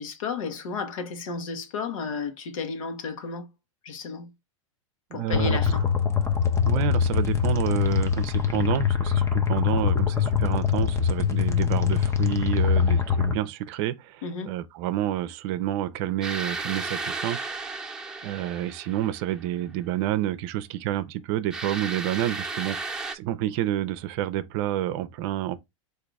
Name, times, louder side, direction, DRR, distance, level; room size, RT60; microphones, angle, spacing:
voice 1, 0.0-3.5 3.8-4.3 5.1-5.8 14.2-14.5, left 5 dB, 75° left, 1.1 m, -33 dB
voice 2, 5.1-5.6 6.6-17.5 18.2-22.8 23.1-25.6, right 13 dB, 50° right, 0.6 m, -29 dB
sound 1, 5.3-13.3, left 7 dB, 15° left, 0.6 m, -23 dB
sound 2, 16.2-19.4 21.5-23.1, right 3 dB, 5° right, 1.0 m, -34 dB
3.9 x 2.6 x 4.6 m
hypercardioid pair, 115°, 17 cm